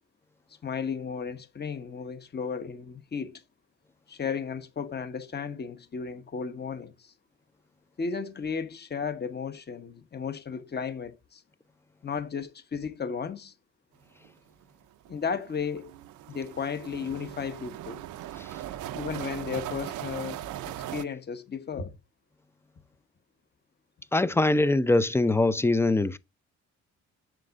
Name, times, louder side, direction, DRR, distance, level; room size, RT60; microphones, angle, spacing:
voice 1, 0.6-3.4 4.1-7.1 8.0-11.4 12.0-13.5 15.1-15.9 16.3-18.0 18.9-21.9, left 6 dB, 35° left, 1.2 m, -34 dB
sound 1, 14.2-14.3 14.6-14.7 15.1-21.0, right 13 dB, 75° right, 0.6 m, -39 dB
voice 2, 24.1-26.2, left 2 dB, 10° left, 0.5 m, -23 dB
7.6 x 6.6 x 2.5 m
cardioid pair, 90°, 30 cm